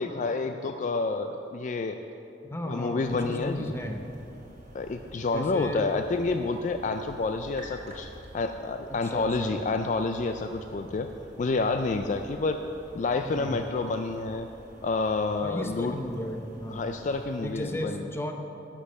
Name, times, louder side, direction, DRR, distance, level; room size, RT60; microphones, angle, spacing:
voice 1, 0.0-2.0 2.7-3.7 4.7-8.1 8.3-11.1 11.4-12.6 12.9-14.5 14.8-15.9 16.7-18.1, left 3 dB, 45° left, 7 dB, 0.3 m, -29 dB
voice 2, 2.5-4.0 5.3-5.9 8.9-9.6 13.2-13.7 15.4-16.8 17.4-18.3, left 1 dB, 15° left, 4 dB, 0.7 m, -35 dB
sound 1, 3.0-17.7, equal, 40° right, 1.7 m, -50 dB
11.0 x 6.2 x 6.5 m, 2.9 s
head